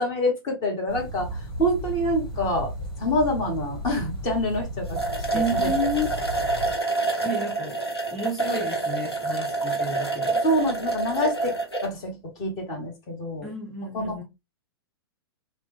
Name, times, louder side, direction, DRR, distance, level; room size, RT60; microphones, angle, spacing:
voice 1, 0.0-2.7 3.0-5.0 5.3-5.4 10.4-11.6 11.8-13.5 13.9-14.2, left 1 dB, 30° left, 1.0 m, -26 dB
sound 1, 0.9-6.7, right 1 dB, 60° left, 1.4 m, -34 dB
sound 2, 4.5-4.6 4.9-11.9, right 3 dB, 80° left, 0.9 m, -27 dB
voice 2, 5.3-6.1 7.2-7.8 8.1-10.4 13.4-14.2, equal, ahead, 0.7 m, -31 dB
3.0 x 2.0 x 2.9 m
figure-of-eight pair, 105°, 13 cm